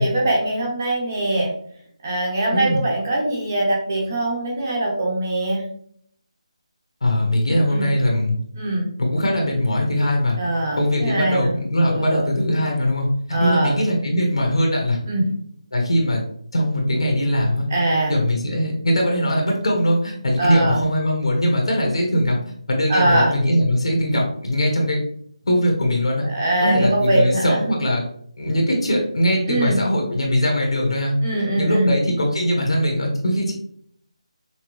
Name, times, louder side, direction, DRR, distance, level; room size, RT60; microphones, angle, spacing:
voice 1, 0.0-1.5 2.0-5.6 7.7-7.9 8.5-8.9 10.4-11.6 11.8-12.2 13.3-13.7 15.1-15.3 17.7-18.1 20.4-20.8 22.9-23.3 26.3-27.6 29.5-29.8 31.2-31.9, right 1 dB, 25° right, -2 dB, 0.9 m, -22 dB
voice 2, 2.5-2.8 7.0-8.4 9.0-10.4 10.8-15.0 15.7-16.2 16.5-17.7 18.1-22.4 22.7-25.0 25.5-26.3 26.6-28.0 28.4-31.1 31.6-33.5, equal, 55° left, 0 dB, 1.4 m, -21 dB
5.9 x 2.1 x 3.0 m, 0.64 s
figure-of-eight pair, 175°, 3 cm